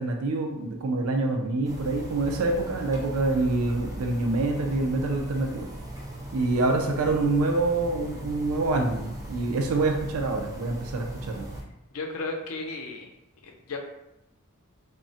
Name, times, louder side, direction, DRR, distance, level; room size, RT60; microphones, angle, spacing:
voice 1, 0.0-5.7 6.3-11.5, right 2 dB, 75° right, 3 dB, 0.4 m, -26 dB
sound 1, 1.6-11.6, right 1 dB, 15° right, 0.5 m, -39 dB
voice 2, 11.9-13.1 13.4-13.8, left 3 dB, 80° left, 2 dB, 0.5 m, -34 dB
3.6 x 2.0 x 2.7 m, 0.89 s
head